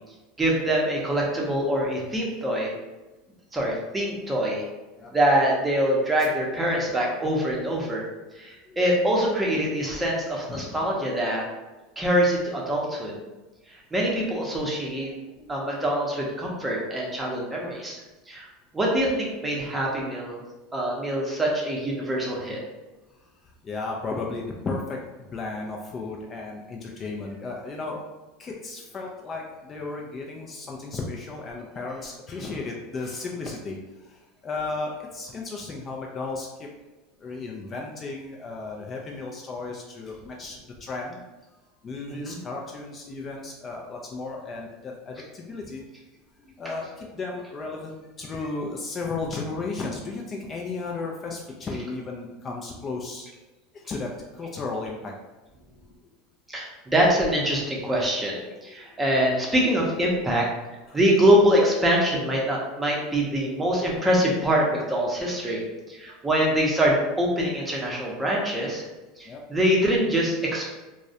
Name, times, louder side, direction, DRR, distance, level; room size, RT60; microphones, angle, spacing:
voice 1, 0.4-2.7 3.5-4.6 5.1-8.0 8.4-11.4 12.0-13.2 13.9-15.1 15.5-18.0 18.3-18.5 18.7-20.4 20.7-22.6 42.1-42.4 56.5-60.5 60.9-65.6 65.9-68.8 69.2-70.7, equal, 15° right, -3 dB, 0.6 m, -24 dB
voice 2, 23.2-28.0 28.4-36.7 37.2-41.2 41.8-45.8 46.4-53.3 53.7-55.1 58.8-58.9 60.9-61.0 66.1-66.2 69.2-69.4, left 3 dB, 30° left, -1 dB, 0.3 m, -34 dB
2.3 x 2.0 x 2.7 m, 1.1 s
supercardioid pair, 110°, 0 cm